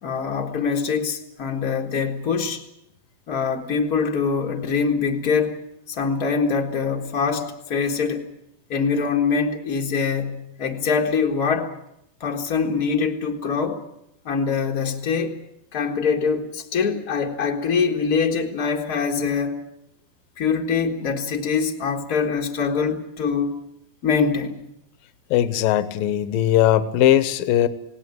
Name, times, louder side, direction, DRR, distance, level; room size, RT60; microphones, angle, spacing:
voice 1, 0.0-2.6 3.3-5.6 5.9-8.3 8.7-11.7 12.2-13.8 14.2-15.3 15.7-19.6 20.4-23.5 24.0-24.6, left 5 dB, 60° left, 0.9 m, -23 dB
voice 2, 25.3-27.7, left 12 dB, 75° left, 2.5 m, -19 dB
19.0 x 18.0 x 9.4 m
omnidirectional pair, 4.3 m